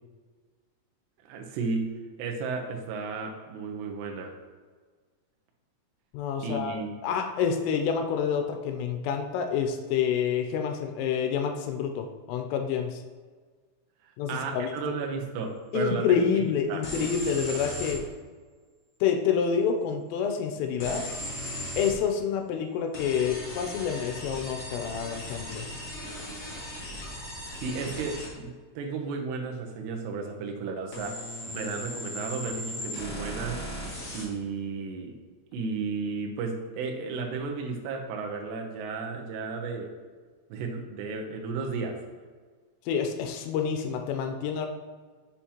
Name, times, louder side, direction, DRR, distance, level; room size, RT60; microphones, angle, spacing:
voice 1, 1.3-1.9 2.2-4.3 6.4-6.9 14.3-16.4 16.7-16.8 27.6-31.2 31.5-33.6 34.1-35.1 35.5-39.9 40.5-42.0, right 4 dB, 75° right, 1 dB, 2.6 m, -33 dB
voice 2, 6.1-13.0 14.2-14.8 15.7-18.0 19.0-21.1 21.8-25.6 42.9-44.7, left 7 dB, 85° left, 5 dB, 3.2 m, -28 dB
sound 1, 16.8-18.0 20.8-22.0 22.9-28.3 30.9-34.2, left 1 dB, 45° left, 2.0 m, -37 dB
7.1 x 7.1 x 2.9 m, 1.5 s
omnidirectional pair, 5.7 m